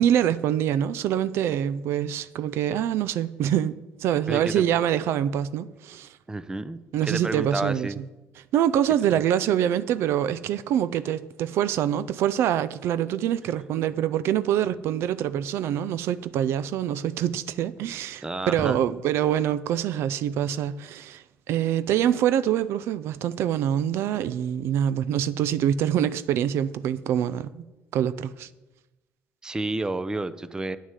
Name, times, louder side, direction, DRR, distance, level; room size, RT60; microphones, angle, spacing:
voice 1, 0.0-6.2 6.9-7.9 8.5-27.6 27.9-28.5, right 10 dB, 75° right, 0.4 m, -25 dB
voice 2, 4.3-4.7 6.3-8.0 9.1-9.2 18.2-18.8 29.4-30.8, right 2 dB, 15° right, 0.6 m, -30 dB
9.2 x 6.2 x 8.2 m
cardioid pair, 95°, 4 cm